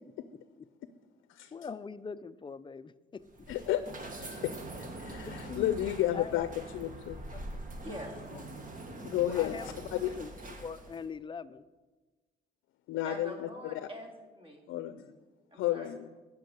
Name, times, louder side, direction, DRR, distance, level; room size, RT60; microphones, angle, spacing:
voice 1, 0.3-0.7 1.5-3.2 5.3-6.4 7.3-7.6 8.3-8.4 9.0-11.7, left 5 dB, 25° left, 13 dB, 0.4 m, -43 dB
sound 1, 3.2-11.1, right 2 dB, 40° right, 1.7 m, -44 dB
voice 2, 3.5-3.8 4.4-4.5 4.8-7.2 9.0-9.7 10.0-10.2 12.9-13.9 14.7-15.1 15.5-16.1, left 13 dB, 85° left, 12 dB, 0.5 m, -32 dB
voice 3, 13.0-14.6 15.5-15.9, equal, 25° right, 1 dB, 2.4 m, -44 dB
10.5 x 5.5 x 8.1 m, 1.3 s
cardioid pair, 90°, 20 cm